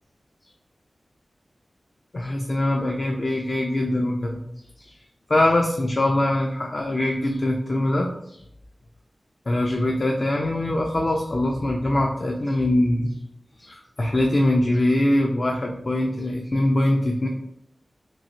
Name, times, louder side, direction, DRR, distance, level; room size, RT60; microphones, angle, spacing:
voice 1, 2.1-4.4 4.8-4.9 5.3-8.4 9.5-13.2 13.6-17.3, left 1 dB, 50° left, 0 dB, 0.4 m, -23 dB
3.0 x 2.7 x 2.6 m, 0.75 s
cardioid pair, 45°, 0 cm